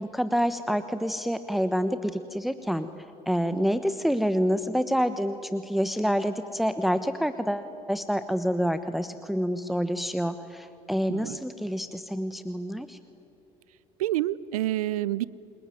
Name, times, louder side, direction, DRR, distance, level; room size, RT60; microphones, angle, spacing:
voice 1, 0.0-2.9 3.3-13.0, equal, ahead, 10 dB, 1.2 m, -27 dB
voice 2, 14.0-15.3, right 14 dB, 85° right, 21 dB, 0.6 m, -28 dB
28.5 x 21.0 x 9.3 m, 2.9 s
hypercardioid pair, 60°, 18 cm